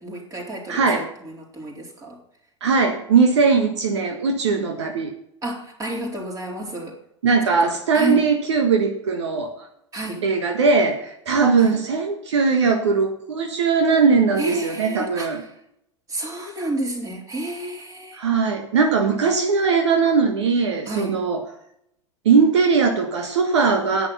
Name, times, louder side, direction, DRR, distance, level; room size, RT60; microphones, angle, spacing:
voice 1, 0.0-2.2 5.4-7.0 7.5-8.2 9.9-10.2 11.6-11.8 14.4-15.5 16.1-18.2 20.9-21.2, right 1 dB, 20° right, 0 dB, 4.0 m, -31 dB
voice 2, 0.7-1.1 2.6-5.1 7.2-9.7 10.2-15.4 18.2-21.4 22.2-24.1, right 5 dB, 70° right, 3 dB, 1.5 m, -20 dB
10.5 x 10.0 x 5.7 m, 0.74 s
figure-of-eight pair, 85°, 15 cm